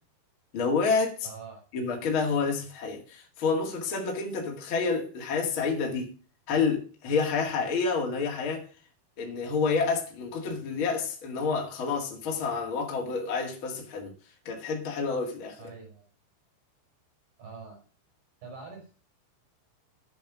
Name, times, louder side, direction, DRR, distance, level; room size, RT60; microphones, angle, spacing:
voice 1, 0.5-1.3 1.7-6.1 6.5-8.7 9.2-14.1 14.4-15.6, left 5 dB, 50° left, 1.5 m, -29 dB
voice 2, 1.2-1.6 15.6-16.1 17.4-17.8 18.4-18.9, right 5 dB, 50° right, 5.8 m, -44 dB
10.0 x 7.2 x 6.1 m
omnidirectional pair, 5.5 m